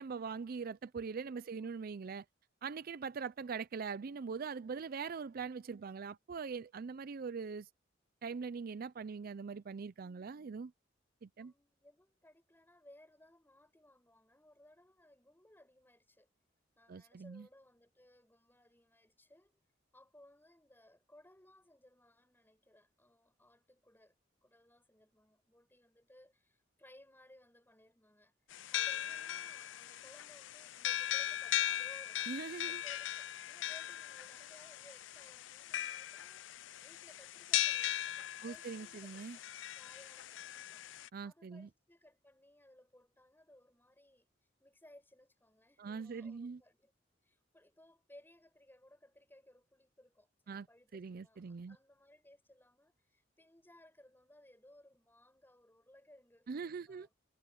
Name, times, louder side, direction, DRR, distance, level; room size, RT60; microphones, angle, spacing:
voice 1, 0.0-2.2 2.6-7.7 8.2-10.7 11.2-11.5 16.9-17.5 32.3-32.8 38.4-39.4 41.1-41.7 45.8-46.6 50.5-50.7 50.9-51.8 56.5-57.1, right 5 dB, 50° right, 0.4 m, -42 dB
voice 2, 1.3-1.7 11.4-16.3 16.8-19.6 19.9-24.1 24.4-28.3 28.7-32.3 32.7-40.9 41.2-44.3 44.6-46.9 47.2-57.1, left 1 dB, 10° left, 7.7 m, -63 dB
sound 1, 28.5-41.1, left 12 dB, 75° left, 0.4 m, -39 dB
head